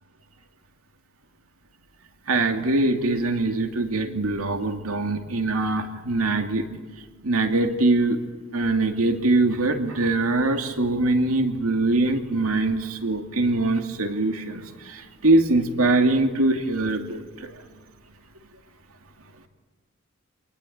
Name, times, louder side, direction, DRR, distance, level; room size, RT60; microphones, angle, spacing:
voice 1, 2.3-6.7 7.2-8.2 8.5-17.5, right 2 dB, 90° right, 5 dB, 2.5 m, -23 dB
27.0 x 20.0 x 9.3 m, 1.4 s
head